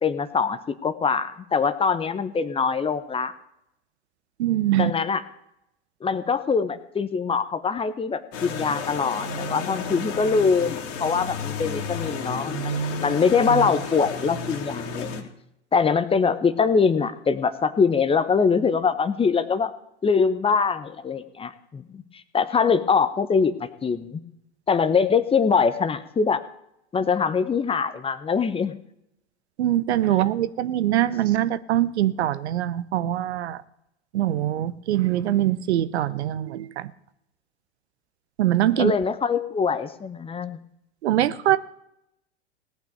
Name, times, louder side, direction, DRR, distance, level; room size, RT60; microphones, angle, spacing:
voice 1, 0.0-3.3 4.8-5.2 6.0-15.3 15.7-19.7 20.0-24.2 24.7-26.4 26.9-28.7 38.8-40.6, left 5 dB, 15° left, 0.9 m, -23 dB
voice 2, 4.4-4.9 29.6-33.6 34.1-36.9 38.4-38.9 41.0-41.6, right 13 dB, 70° right, 0.8 m, -23 dB
sound 1, 8.3-15.2, left 2 dB, 45° left, 2.3 m, -31 dB
17.5 x 5.9 x 9.1 m
hypercardioid pair, 100°, 35 cm